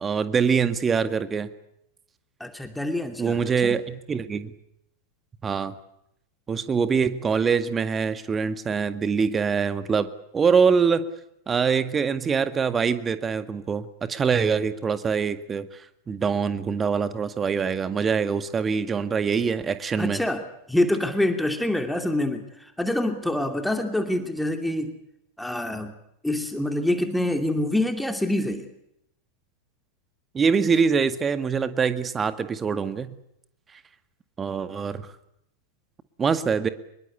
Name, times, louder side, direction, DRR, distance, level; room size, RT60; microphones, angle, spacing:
voice 1, 0.0-1.5 3.2-4.5 5.4-5.7 6.5-10.1 10.3-11.1 11.5-20.2 30.3-33.2 34.4-35.1 36.2-36.7, right 6 dB, 20° right, 11 dB, 1.9 m, -24 dB
voice 2, 2.4-3.8 20.0-20.4 20.7-25.0 25.4-26.0 26.2-28.7, left 1 dB, 5° left, 5 dB, 2.6 m, -26 dB
25.5 x 22.5 x 8.4 m, 0.78 s
figure-of-eight pair, 90°, 0 cm